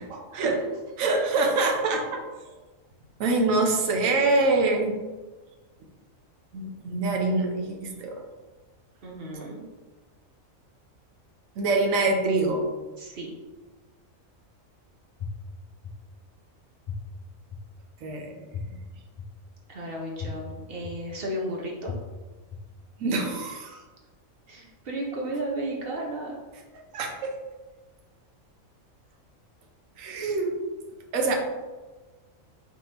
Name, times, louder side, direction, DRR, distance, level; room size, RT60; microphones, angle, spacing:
voice 1, 0.3-0.6 1.0-2.2 3.2-5.0 6.5-8.2 11.6-12.7 18.0-18.3 23.0-23.8 26.9-27.3 30.0-30.6 31.1-31.4, right 3 dB, 75° right, 2 dB, 1.1 m, -25 dB
voice 2, 9.0-9.6 13.0-13.3 19.7-21.9 24.5-26.4, right 1 dB, 50° right, -2 dB, 0.9 m, -33 dB
sound 1, 15.2-15.3 15.8-15.9 16.9-17.0 17.5-17.6 18.5-18.6 19.2-19.3 20.2-20.3 20.8-20.9 21.9-22.0 22.5-22.6, left 10 dB, 75° left, 0.4 m, -34 dB
4.4 x 3.7 x 2.8 m, 1.3 s
omnidirectional pair, 1.4 m